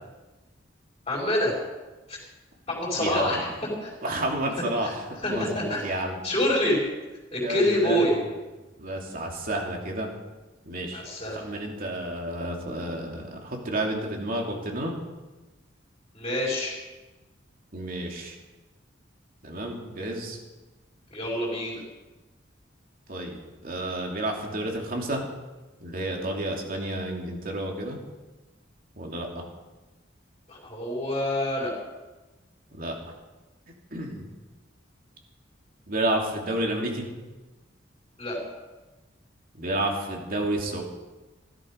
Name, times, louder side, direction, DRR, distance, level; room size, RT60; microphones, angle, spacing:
voice 1, 1.1-1.6 2.1-2.2 2.7-3.5 3.8-3.9 4.8-4.9 5.2-5.8 6.2-6.8 7.3-8.2 10.9-11.4 16.1-16.7 21.1-21.8 30.5-31.7 38.2-38.4, left 1 dB, 30° left, -5 dB, 4.9 m, -26 dB
voice 2, 2.9-3.5 4.0-6.2 7.4-8.1 8.8-10.1 10.7-11.0 11.3-14.9 17.7-18.4 19.4-20.4 23.1-25.2 25.8-28.0 28.9-29.4 32.7-32.9 33.9-34.3 35.9-37.1 39.5-40.8, right 1 dB, 50° right, 0 dB, 2.8 m, -30 dB
16.0 x 13.5 x 5.2 m, 1.2 s
head